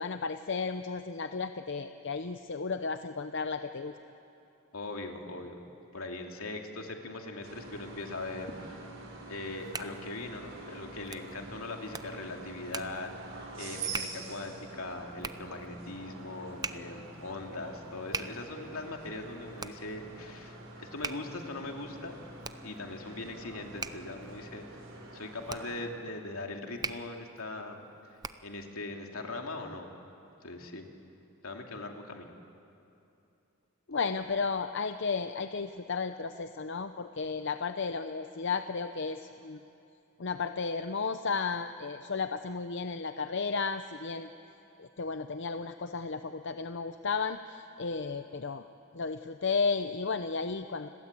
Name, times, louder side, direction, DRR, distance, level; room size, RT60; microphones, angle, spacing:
voice 1, 0.0-3.9 33.9-39.6 40.2-44.3 44.8-48.6 48.9-50.9, left 4 dB, 55° left, 9 dB, 0.7 m, -33 dB
voice 2, 4.7-5.5 5.9-8.8 9.3-13.1 13.5-22.3 22.6-24.9 25.1-27.8 28.4-29.9 30.4-30.9 31.4-32.3, left 2 dB, 80° left, 2 dB, 2.8 m, -40 dB
sound 1, 7.4-25.7, right 3 dB, 60° right, 4.9 m, -46 dB
Hands, 9.3-28.6, right 4 dB, 20° right, 0.7 m, -44 dB
29.5 x 21.5 x 8.4 m, 2.8 s
head